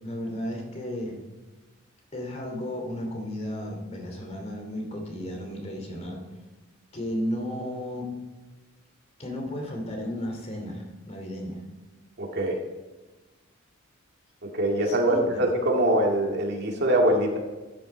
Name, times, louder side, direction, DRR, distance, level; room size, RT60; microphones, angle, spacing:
voice 1, 0.0-1.2 2.1-6.3 6.9-8.3 9.2-11.6 14.8-15.4, equal, 30° left, 2 dB, 2.6 m, -34 dB
voice 2, 12.2-12.6 14.5-17.4, right 1 dB, 55° right, 1 dB, 2.1 m, -23 dB
12.5 x 9.5 x 4.4 m, 1.2 s
head